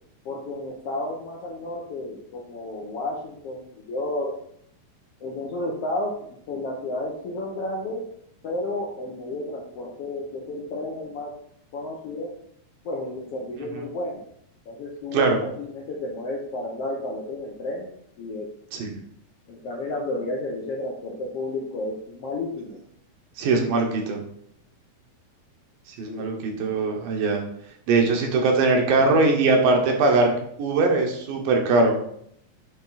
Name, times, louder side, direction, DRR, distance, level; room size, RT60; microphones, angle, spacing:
voice 1, 0.2-4.3 5.2-8.0 8.4-11.3 11.7-12.3 12.8-14.2 14.6-17.9 18.2-18.5 19.5-22.8 26.0-26.2, left 2 dB, 75° left, -3 dB, 1.4 m, -32 dB
voice 2, 23.4-24.2 26.0-27.4 27.9-30.3 30.6-31.9, right 3 dB, 80° right, 2 dB, 2.8 m, -21 dB
8.7 x 3.6 x 4.0 m, 0.68 s
omnidirectional pair, 4.0 m